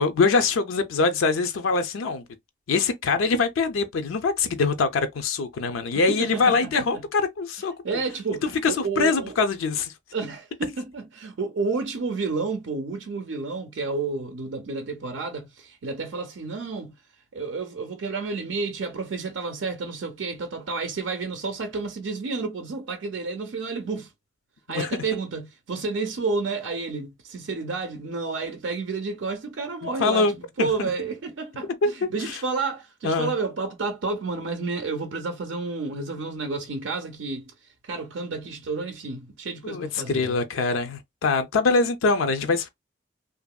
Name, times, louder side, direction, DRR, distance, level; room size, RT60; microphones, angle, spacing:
voice 1, 0.0-2.2 2.7-7.7 8.4-9.9 24.7-25.0 29.8-30.9 31.8-31.9 32.2-32.4 33.0-33.3 39.6-42.7, left 4 dB, 90° left, 0.4 m, -24 dB
voice 2, 5.9-7.0 7.8-9.3 10.1-16.9 17.3-24.1 24.7-30.3 30.6-37.5 37.8-40.4, right 4 dB, 75° right, 0.5 m, -30 dB
2.8 x 2.5 x 2.2 m
head